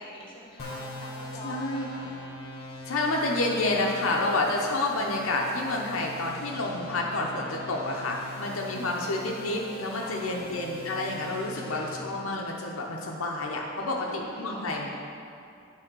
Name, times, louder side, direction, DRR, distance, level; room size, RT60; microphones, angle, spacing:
voice 1, 0.0-2.2 8.2-8.7 9.9-10.4 13.7-14.8, left 1 dB, 25° left, -4 dB, 1.6 m, -45 dB
sound 1, 0.6-11.9, left 1 dB, 50° left, 1.1 m, -42 dB
voice 2, 1.4-1.8 2.8-14.9, left 2 dB, 80° left, -1 dB, 0.8 m, -29 dB
9.2 x 3.5 x 6.0 m, 2.5 s
head